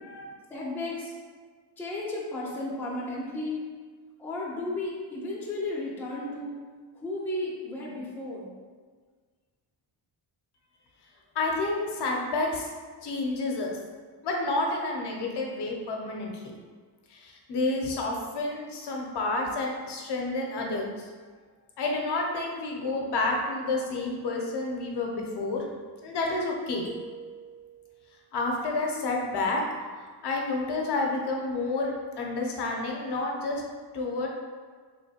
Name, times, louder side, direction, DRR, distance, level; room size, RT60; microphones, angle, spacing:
voice 1, 0.5-1.1 1.8-3.6 4.2-6.6 6.9-8.5, left 2 dB, 5° left, -5 dB, 0.5 m, -34 dB
voice 2, 11.3-12.7 13.0-13.8 14.2-16.4 17.1-21.1 21.8-25.7 26.0-26.9 28.3-29.6 30.2-33.6 33.9-34.3, left 2 dB, 55° left, 0 dB, 0.6 m, -29 dB
sound 1, 26.8-28.0, right 5 dB, 45° right, 1.0 m, -44 dB
3.8 x 3.1 x 2.8 m, 1.5 s
wide cardioid pair, 165°, 48 cm